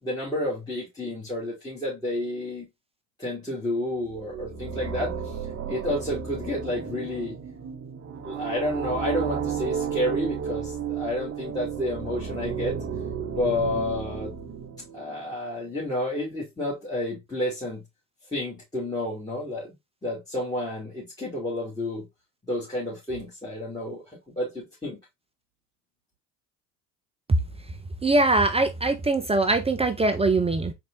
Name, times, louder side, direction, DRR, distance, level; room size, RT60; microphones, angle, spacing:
voice 1, 0.0-2.7 3.2-5.4 5.7-7.4 8.2-12.8 13.3-14.3 14.9-17.8 18.3-19.7 20.0-22.1 22.4-25.0, left 1 dB, 10° left, 2.3 m, -30 dB
sound 1, 4.0-15.2, right 7 dB, 30° right, 1.0 m, -33 dB
voice 2, 28.0-30.7, right 2 dB, 15° right, 0.5 m, -22 dB
4.1 x 3.5 x 2.5 m
hypercardioid pair, 70°, 45 cm